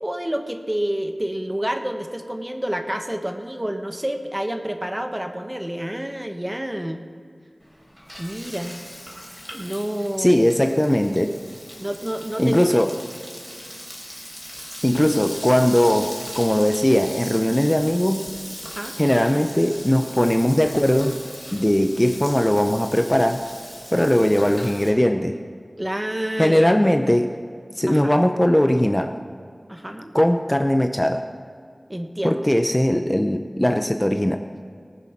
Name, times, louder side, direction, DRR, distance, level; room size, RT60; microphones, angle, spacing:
voice 1, 0.0-7.0 8.2-8.7 9.5-10.5 11.8-12.8 18.6-18.9 25.8-26.7 27.9-28.2 29.7-30.1 31.9-32.4, right 1 dB, 20° right, 5 dB, 1.1 m, -28 dB
Frying (food), 7.6-24.9, equal, 5° right, 3.7 m, -39 dB
voice 2, 10.2-11.3 12.4-12.9 14.8-18.2 19.0-21.2 21.5-23.4 23.9-25.3 26.4-27.3 27.8-29.1 30.1-31.2 32.2-34.4, equal, 15° left, 6 dB, 0.6 m, -19 dB
19.0 x 6.9 x 5.9 m, 2.1 s
wide cardioid pair, 50°, 0 cm